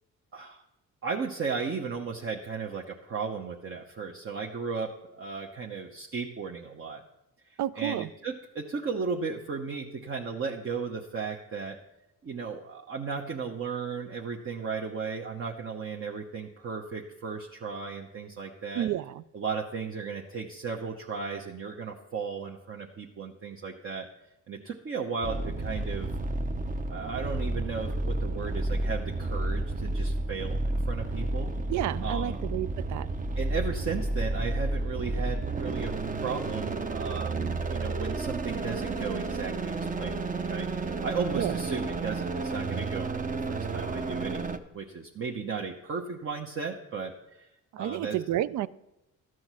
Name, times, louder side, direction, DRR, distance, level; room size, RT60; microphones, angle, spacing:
voice 1, 1.0-7.0 7.5-11.8 12.2-18.9 19.3-24.1 24.5-26.1 26.9-31.5 32.0-32.4 33.3-37.4 37.7-47.1 47.4-47.5 47.8-48.2, right 5 dB, 45° right, 1.0 m, -35 dB
voice 2, 7.6-8.1 18.8-19.2 31.7-33.1 41.4-41.5 47.7-48.7, right 13 dB, 70° right, 0.5 m, -30 dB
sound 1, 25.2-44.6, right 2 dB, 25° right, 0.7 m, -31 dB
12.5 x 6.2 x 6.1 m
cardioid pair, 90°, 30 cm